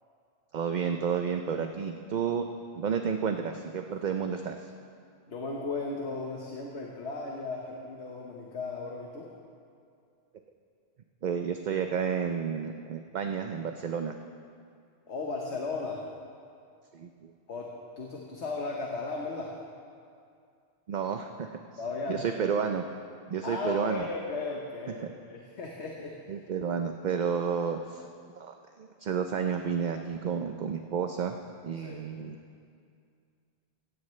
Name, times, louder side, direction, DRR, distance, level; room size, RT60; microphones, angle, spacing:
voice 1, 0.5-2.5 2.7-4.7 11.2-14.2 16.9-17.3 20.9-21.5 22.1-22.8 23.3-24.1 25.0-25.1 26.3-28.0 28.4-31.4 31.6-32.4, right 7 dB, 50° right, 6 dB, 0.6 m, -31 dB
voice 2, 5.3-9.3 15.1-16.0 17.5-19.5 21.8-22.3 23.4-26.2 31.7-32.0, left 3 dB, 75° left, -1 dB, 1.5 m, -36 dB
16.5 x 16.0 x 3.2 m, 2.4 s
omnidirectional pair, 1.1 m